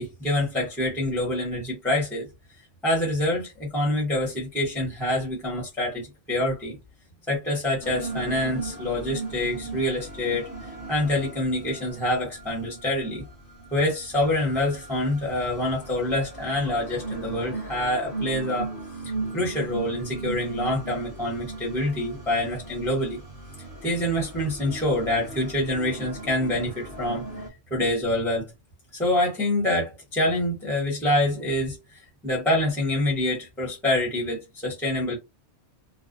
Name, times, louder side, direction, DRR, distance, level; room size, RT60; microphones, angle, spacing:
voice 1, 0.0-2.3 2.8-6.8 7.3-10.5 10.9-13.2 13.7-18.7 19.0-23.2 23.8-27.2 27.7-28.5 28.9-35.2, left 1 dB, ahead, 0.7 m, -26 dB
sound 1, 7.8-27.5, right 2 dB, 50° left, 0.8 m, -37 dB
2.5 x 2.0 x 2.5 m
omnidirectional pair, 1.2 m